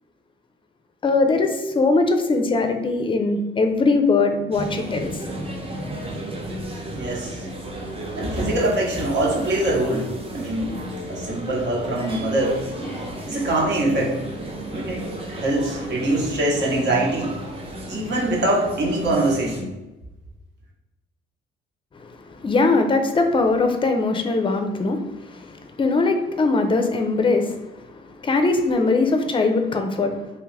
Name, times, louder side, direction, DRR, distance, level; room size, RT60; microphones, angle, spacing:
voice 1, 1.0-5.1 22.1-30.3, left 3 dB, 25° left, 6 dB, 0.4 m, -21 dB
sound 1, 4.5-19.6, right 1 dB, 30° right, 0.7 m, -33 dB
voice 2, 6.9-7.5 8.1-10.8 11.1-12.7 13.3-14.2 14.7-17.4 17.9-19.7, right 1 dB, 60° right, -2 dB, 1.0 m, -23 dB
3.0 x 2.4 x 3.2 m, 1.0 s
cardioid pair, 90°, 20 cm